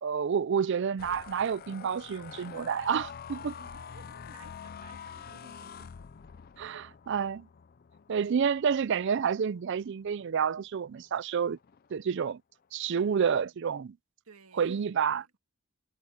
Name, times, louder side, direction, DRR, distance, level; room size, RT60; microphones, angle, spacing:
voice 1, 0.0-3.5 6.6-7.5 8.1-11.6 11.9-12.4 12.7-14.0 14.6-15.4, right 7 dB, 55° right, 0.4 m, -29 dB
sound 1, 1.0-10.4 10.9-11.2 11.5-11.9, left 7 dB, 45° left, 0.4 m, -47 dB
voice 2, 3.6-5.9 12.9-13.6 14.2-15.4, right 3 dB, 80° right, 1.9 m, -57 dB
head